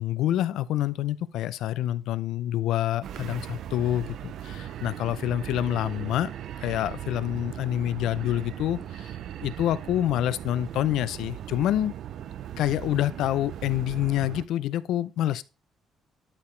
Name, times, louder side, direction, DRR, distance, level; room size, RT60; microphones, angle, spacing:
voice 1, 0.0-6.3 6.6-9.1 9.4-11.9 12.6-15.4, left 12 dB, 90° left, 0.5 m, -27 dB
sound 1, 3.0-14.4, right 11 dB, 65° right, 0.5 m, -38 dB
11.5 x 4.9 x 3.2 m
cardioid pair, 155°, 0 cm